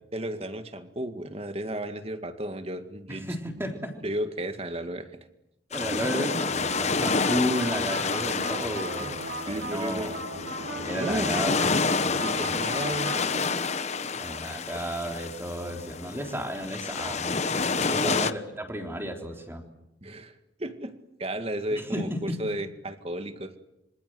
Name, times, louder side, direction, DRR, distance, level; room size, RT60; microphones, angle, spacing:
voice 1, 0.1-3.3 4.0-5.1 5.9-6.2 9.0-9.2 9.5-10.1 10.9-11.4 12.2-13.5 17.9-18.3 20.0-20.9 21.2-23.5, right 1 dB, 35° right, 8 dB, 2.0 m, -34 dB
voice 2, 3.1-4.0 5.7-10.2 10.8-11.7 14.2-19.6 21.9-22.4, equal, 15° right, 3 dB, 3.7 m, -33 dB
sound 1, 5.7-18.3, left 4 dB, 40° left, 1.0 m, -29 dB
sound 2, 6.3-13.2, right 2 dB, 65° right, 5.4 m, -37 dB
27.0 x 25.5 x 7.9 m, 0.86 s
head